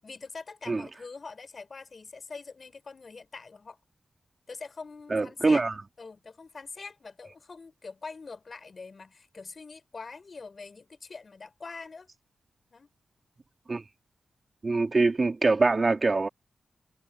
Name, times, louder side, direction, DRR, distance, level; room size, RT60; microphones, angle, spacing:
voice 1, 0.0-3.8 4.5-5.7 6.0-12.1 12.7-12.9, left 4 dB, 55° left, 7.0 m, -44 dB
voice 2, 5.1-5.7 13.7-13.8 14.6-16.3, right 3 dB, 45° right, 3.2 m, -24 dB
cardioid pair, 55°, 0 cm